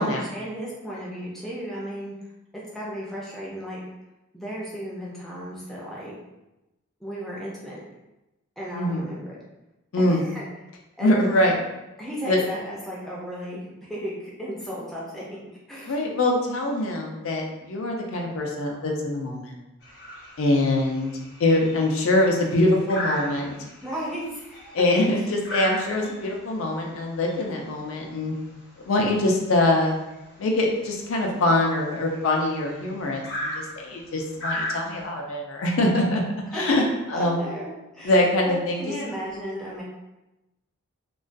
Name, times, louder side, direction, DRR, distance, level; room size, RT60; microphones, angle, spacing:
voice 1, 0.0-2.1 2.5-3.8 4.3-6.2 7.0-7.8 8.6-9.4 10.0-10.4 11.0-11.2 12.0-15.2 15.7-16.0 23.8-24.8 25.1-25.3 36.5-36.8 37.1-39.8, equal, ahead, -6 dB, 0.4 m, -35 dB
voice 2, 8.7-9.0 9.9-10.2 11.0-11.5 12.3-12.4 15.9-19.5 20.4-21.1 21.4-23.5 24.7-28.3 28.9-30.0 30.4-33.2 33.6-36.2 36.5-36.8 37.1-37.4 38.0-38.8, left 1 dB, 70° left, 0 dB, 0.4 m, -23 dB
sound 1, 19.8-35.1, equal, 50° left, 0.8 m, -37 dB
2.2 x 2.2 x 2.5 m, 0.99 s
head